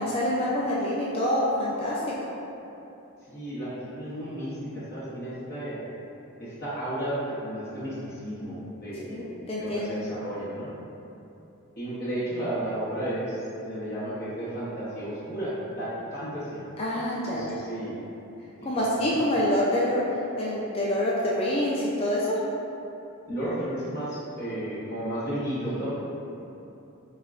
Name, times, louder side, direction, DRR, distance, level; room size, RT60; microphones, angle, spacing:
voice 1, 0.0-2.0 9.1-9.9 16.8-17.6 18.6-20.0 20.4-22.4, left 1 dB, 25° left, -6 dB, 0.3 m, -26 dB
voice 2, 3.3-5.8 6.4-10.7 11.8-13.4 13.7-16.6 17.2-18.0 18.7-19.0 23.3-26.0, right 1 dB, 45° left, -12 dB, 0.8 m, -33 dB
5.8 x 2.2 x 2.4 m, 2.9 s
head